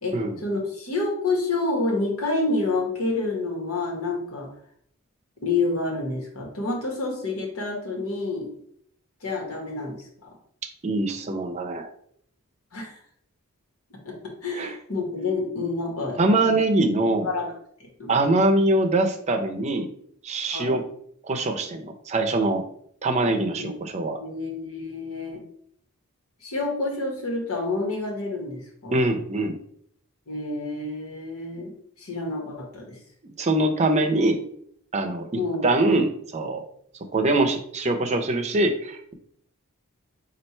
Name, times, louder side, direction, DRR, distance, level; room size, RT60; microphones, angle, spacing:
voice 1, 0.0-4.5 5.4-8.4 9.2-10.3 12.7-13.0 14.0-16.2 17.2-17.5 17.8-18.2 20.5-20.8 23.6-23.7 24.2-25.4 26.4-29.0 30.3-31.7 32.0-33.0 35.3-35.7, left 3 dB, 80° left, -1 dB, 1.5 m, -28 dB
voice 2, 10.8-11.9 14.5-14.7 16.2-17.3 18.1-19.9 20.2-20.9 21.2-22.7 23.0-24.2 28.9-29.6 33.4-34.4 34.9-36.6 37.1-39.1, right 2 dB, 30° right, 4 dB, 0.6 m, -23 dB
4.3 x 2.5 x 4.4 m, 0.66 s
head